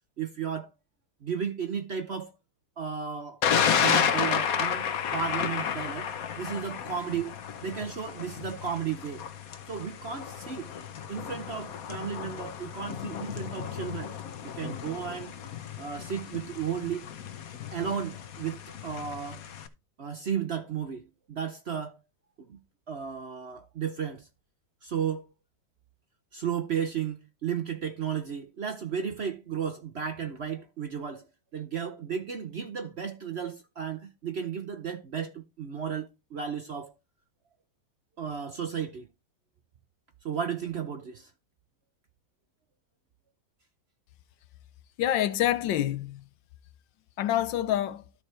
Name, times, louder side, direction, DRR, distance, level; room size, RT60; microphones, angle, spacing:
voice 1, 0.2-0.7 1.2-2.3 2.8-3.4 3.8-6.1 6.4-7.3 7.6-9.2 9.7-10.7 11.1-14.1 14.4-15.3 15.8-17.1 17.7-19.4 20.0-22.0 22.4-22.6 22.9-24.3 24.8-25.3 26.3-36.9 38.2-39.1 40.2-41.3, right 7 dB, 50° right, 0.8 m, -34 dB
Thunder, 3.4-19.7, left 8 dB, 55° left, 1.3 m, -32 dB
voice 2, 45.0-46.3 47.2-48.0, left 12 dB, 85° left, 1.5 m, -27 dB
13.0 x 4.8 x 4.3 m
omnidirectional pair, 2.0 m